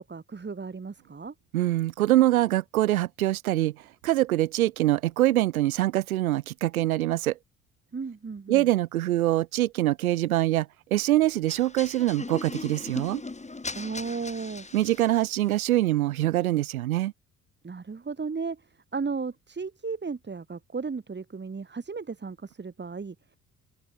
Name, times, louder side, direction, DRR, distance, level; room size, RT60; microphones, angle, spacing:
voice 1, 0.0-1.3 7.9-8.7 13.7-14.7 17.6-23.4, right 5 dB, 25° right, 2.9 m, -35 dB
voice 2, 1.5-3.8 4.0-7.4 8.5-13.2 14.7-17.1, right 15 dB, 80° right, 1.2 m, -24 dB
sound 1, 11.5-15.4, left 3 dB, 15° left, 2.9 m, -39 dB
open air
figure-of-eight pair, 50°, 42 cm